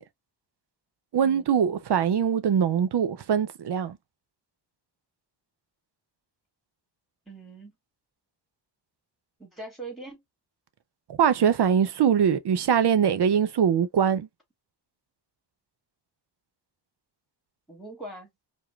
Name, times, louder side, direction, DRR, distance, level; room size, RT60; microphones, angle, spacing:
voice 1, 1.1-4.0 11.1-14.3, right 8 dB, 65° right, 0.6 m, -22 dB
voice 2, 7.3-7.7 9.4-10.2 17.7-18.3, right 2 dB, ahead, 2.0 m, -41 dB
4.9 x 2.1 x 2.2 m
wide cardioid pair, 130°, 44 cm